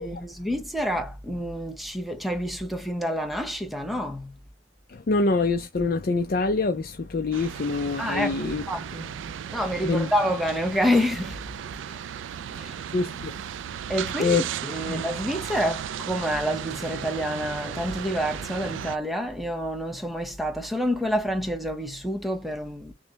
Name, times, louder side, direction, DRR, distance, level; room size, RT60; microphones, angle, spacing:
voice 1, 0.0-4.4 8.0-9.2 9.5-11.4 11.9-12.0 12.5-12.8 13.9-22.9, equal, ahead, 0.7 m, -28 dB
voice 2, 4.9-8.6 9.8-10.1 12.9-13.3 14.2-14.4 14.8-15.2, left 3 dB, 50° left, 0.5 m, -25 dB
sound 1, 7.3-19.0, right 8 dB, 75° right, 0.3 m, -35 dB
6.4 x 2.1 x 2.8 m
head